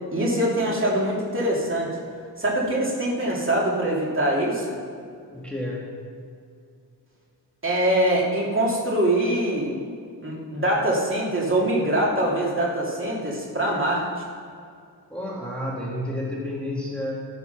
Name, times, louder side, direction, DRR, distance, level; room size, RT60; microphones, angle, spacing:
voice 1, 0.1-1.9 2.4-4.8 7.6-9.7 10.2-14.0, right 1 dB, 30° right, -4 dB, 2.7 m, -23 dB
voice 2, 5.3-5.9 15.1-17.1, left 1 dB, 5° left, -5 dB, 1.7 m, -30 dB
12.5 x 9.7 x 5.8 m, 2.3 s
wide cardioid pair, 115°, 42 cm